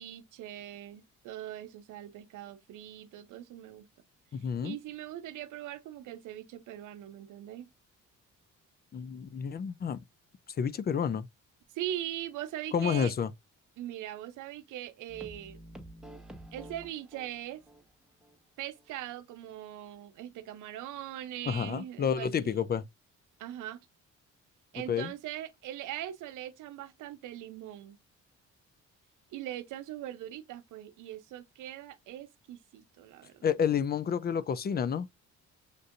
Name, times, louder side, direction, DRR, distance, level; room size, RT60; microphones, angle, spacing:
voice 1, 0.0-3.9 4.6-7.7 11.7-13.1 13.8-15.6 16.5-17.6 18.6-22.3 23.4-23.8 24.7-28.0 29.3-33.5, right 12 dB, 85° right, 0.7 m, -41 dB
voice 2, 4.3-4.8 8.9-10.0 10.6-11.3 12.7-13.3 21.5-22.8 24.9-25.1 33.4-35.1, left 7 dB, 35° left, 0.4 m, -30 dB
sound 1, 15.1-17.9 18.2-18.3 18.7-18.8, right 1 dB, ahead, 1.0 m, -49 dB
6.6 x 2.6 x 2.5 m
cardioid pair, 90°, 30 cm